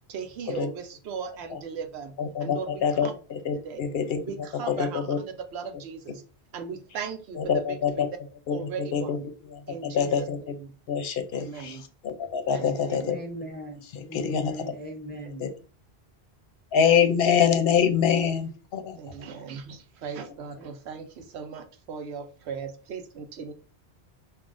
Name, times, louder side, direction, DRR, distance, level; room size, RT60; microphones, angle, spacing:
voice 1, 0.1-3.1 3.6-3.9 4.2-6.2 6.5-8.2 8.5-9.3 9.7-10.3 10.6-10.8 11.3-11.9 12.5-13.1 19.0-23.5, right 6 dB, 75° right, 0.9 m, -38 dB
voice 2, 2.2-4.2 4.7-5.2 7.4-8.1 8.5-9.2 9.5-10.5 10.9-13.2 14.1-14.5 15.4-15.5 16.7-19.0, left 7 dB, 65° left, 0.7 m, -25 dB
voice 3, 13.1-15.5, equal, 15° left, 0.4 m, -38 dB
5.6 x 2.3 x 2.4 m
omnidirectional pair, 1.1 m